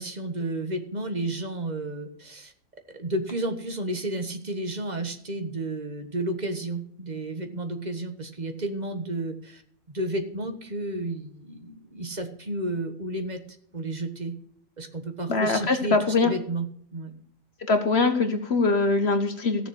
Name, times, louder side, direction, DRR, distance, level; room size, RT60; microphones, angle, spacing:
voice 1, 0.0-2.5 2.9-9.6 9.9-13.4 13.7-14.3 14.8-16.7 16.9-17.1, right 2 dB, 35° right, 7 dB, 1.5 m, -32 dB
voice 2, 15.3-16.3 17.7-19.7, left 3 dB, 55° left, 7 dB, 1.4 m, -22 dB
15.0 x 7.0 x 6.4 m, 0.63 s
omnidirectional pair, 1.4 m